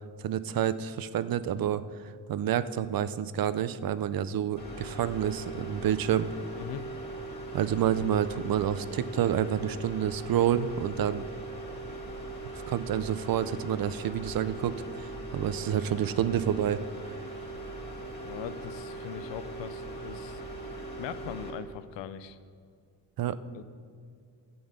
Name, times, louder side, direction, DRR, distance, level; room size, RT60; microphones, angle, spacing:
voice 1, 0.2-1.8 2.3-6.3 7.5-11.2 12.5-17.1 23.2-23.4, right 10 dB, 55° right, 15 dB, 0.6 m, -29 dB
sound 1, 4.6-21.5, right 2 dB, 20° left, 2.8 m, -40 dB
voice 2, 6.6-6.9 18.2-20.4 21.0-22.4 23.5-23.6, left 9 dB, 90° left, 13 dB, 0.7 m, -40 dB
11.0 x 7.8 x 5.2 m, 2.3 s
cardioid pair, 80°, 42 cm